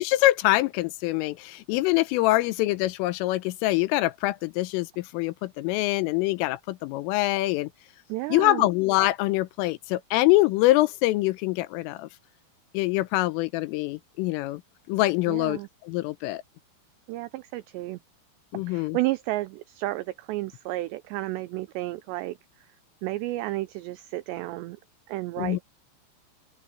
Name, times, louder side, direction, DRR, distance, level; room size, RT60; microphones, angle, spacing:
voice 1, 0.0-7.7 8.3-12.1 12.8-14.6 14.9-16.4 18.5-19.0 25.4-25.6, left 18 dB, 85° left, 3.5 m, -24 dB
voice 2, 8.1-8.7 15.3-15.7 17.1-18.0 18.5-22.4 23.0-24.8 25.1-25.6, right 18 dB, 90° right, 2.4 m, -32 dB
open air
omnidirectional pair, 5.7 m